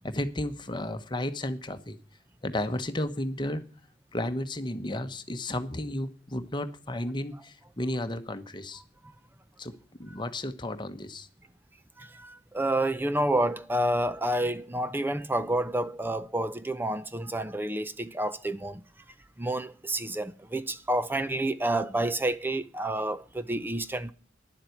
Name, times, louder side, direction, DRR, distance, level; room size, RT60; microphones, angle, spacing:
voice 1, 0.0-2.0 2.4-3.6 4.1-8.8 9.6-9.7 10.0-11.3, left 1 dB, 25° left, 1.1 m, -33 dB
voice 2, 12.0-18.8 19.4-24.1, right 1 dB, 10° right, 0.5 m, -29 dB
11.0 x 7.6 x 9.2 m
head